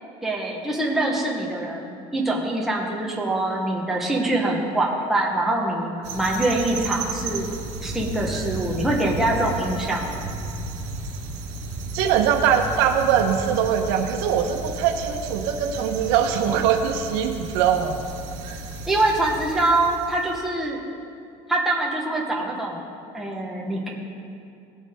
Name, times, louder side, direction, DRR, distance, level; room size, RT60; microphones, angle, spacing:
voice 1, 0.2-7.5 7.8-10.2 18.9-20.8 21.5-22.9 23.1-24.1, right 2 dB, ahead, -3 dB, 1.1 m, -24 dB
sound 1, 6.0-20.4, right 2 dB, 60° right, 1.7 m, -34 dB
voice 2, 11.9-18.0, right 8 dB, 85° right, 5 dB, 1.0 m, -22 dB
18.0 x 7.2 x 3.6 m, 2.5 s
cardioid pair, 180°, 13 cm